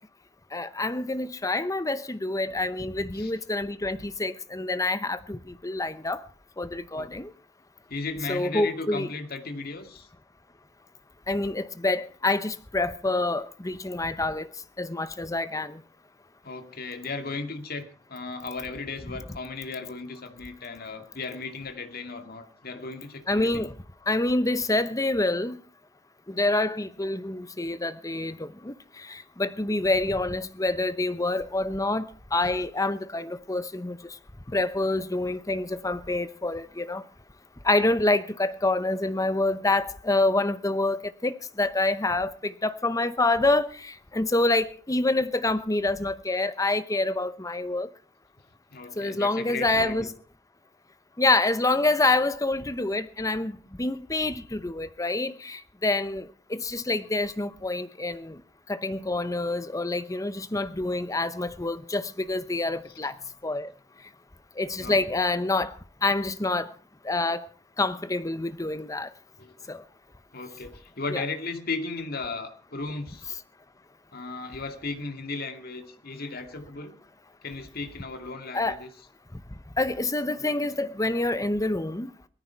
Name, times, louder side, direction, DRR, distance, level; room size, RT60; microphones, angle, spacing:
voice 1, 0.5-6.2 6.6-7.3 8.3-9.1 11.3-14.5 14.8-15.8 23.3-23.7 24.1-25.6 26.3-34.2 34.5-37.0 37.6-47.9 49.0-50.1 51.2-58.4 58.7-63.2 63.4-63.7 64.6-65.8 66.0-66.7 67.0-67.4 67.8-69.1 69.7-69.8 71.1-71.2 78.5-78.8 79.8-82.1, left 2 dB, 15° left, 0.8 m, -27 dB
voice 2, 7.9-10.1 16.4-23.7 48.7-50.1 64.8-65.0 69.4-69.6 70.3-73.3 74.1-76.9 77.4-78.9 80.4-80.7, left 3 dB, 55° left, 2.2 m, -36 dB
18.5 x 14.0 x 4.6 m
head